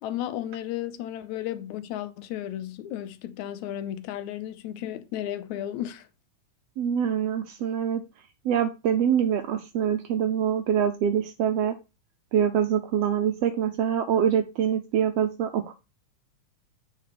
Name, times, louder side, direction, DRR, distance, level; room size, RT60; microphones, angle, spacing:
voice 1, 0.0-6.1, left 12 dB, 80° left, 1.9 m, -34 dB
voice 2, 6.8-8.0 8.4-11.8 12.3-15.7, right 8 dB, 85° right, 1.4 m, -25 dB
8.8 x 4.3 x 4.1 m
omnidirectional pair, 3.5 m